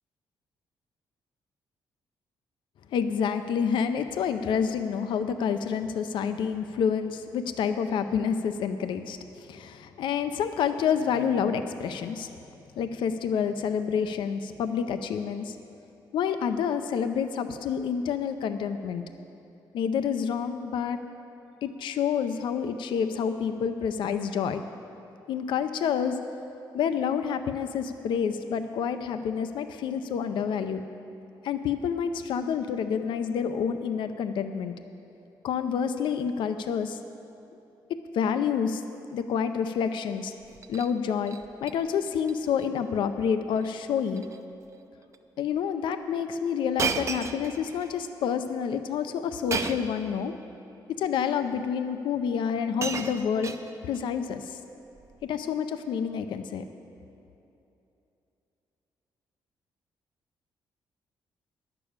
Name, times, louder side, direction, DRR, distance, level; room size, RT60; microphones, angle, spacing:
voice 1, 2.9-12.3 12.8-15.6 16.1-19.0 19.7-21.0 21.6-24.6 25.3-26.2 26.7-30.8 31.4-34.7 35.4-37.0 38.1-38.8 39.1-40.3 40.7-44.2 45.4-50.3 51.0-53.5 53.8-54.6 55.3-56.6, left 7 dB, 75° left, 9 dB, 0.5 m, -28 dB
Shatter, 40.4-40.9 41.3-41.7 42.1-42.3 42.6-42.7 43.6-43.8 44.1-44.4 45.1-45.2 46.8-47.9 49.5-50.0 51.0-51.1 52.1-52.2 52.5-54.0 55.0-55.2, right 5 dB, 35° right, 0.6 m, -33 dB
11.0 x 6.8 x 8.6 m, 2.8 s
cardioid pair, 125°, 8 cm